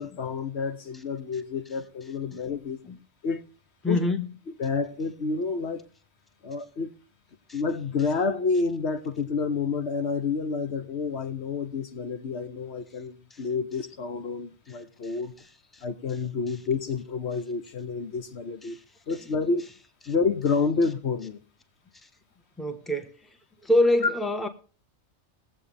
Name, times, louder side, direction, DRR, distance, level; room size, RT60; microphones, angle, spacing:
voice 1, 0.0-2.8 3.2-3.5 3.8-4.0 4.6-5.9 6.4-6.9 7.5-15.3 15.8-18.8 19.1-19.6 20.1-21.4, left 4 dB, 70° left, 1.3 m, -29 dB
voice 2, 3.8-4.3 7.5-7.6 13.3-13.4 15.7-15.8 18.6-18.8 22.6-23.1 23.6-24.5, left 1 dB, ahead, 1.1 m, -25 dB
21.5 x 8.1 x 3.4 m
omnidirectional pair, 1.2 m